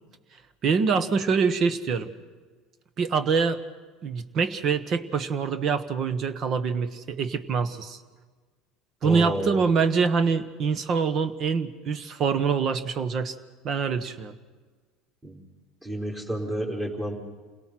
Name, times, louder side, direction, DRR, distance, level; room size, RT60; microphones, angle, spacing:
voice 1, 0.6-2.1 3.0-3.6 4.0-8.0 9.0-13.4 13.6-14.3, right 5 dB, 45° right, 11 dB, 1.3 m, -25 dB
voice 2, 9.0-9.6 15.2-15.4 15.8-17.1, equal, 20° right, -2 dB, 4.0 m, -30 dB
28.0 x 17.5 x 6.0 m, 1.4 s
supercardioid pair, 100°, 0 cm